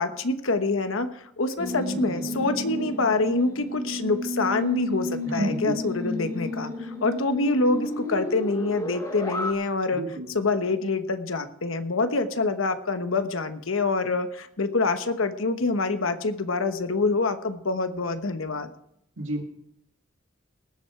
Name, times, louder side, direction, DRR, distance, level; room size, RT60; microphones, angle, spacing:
voice 1, 0.0-10.0 10.3-18.7, left 3 dB, 85° left, 9 dB, 1.1 m, -26 dB
sound 1, 1.6-9.5, left 1 dB, 20° left, 2.4 m, -32 dB
voice 2, 5.3-5.8 10.0-10.3 19.2-19.4, right 1 dB, 75° right, 2 dB, 2.1 m, -30 dB
19.5 x 7.9 x 4.6 m, 0.73 s
head